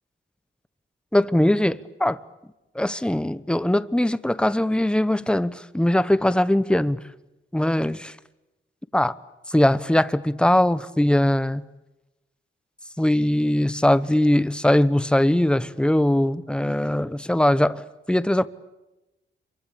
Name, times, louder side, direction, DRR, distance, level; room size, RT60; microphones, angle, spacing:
voice 1, 1.1-2.2 2.7-7.0 7.5-8.1 8.9-9.1 9.5-11.6 13.0-17.8 18.1-18.5, left 1 dB, 5° left, 0.9 m, -21 dB
26.5 x 24.0 x 8.5 m
cardioid pair, 85°, 21 cm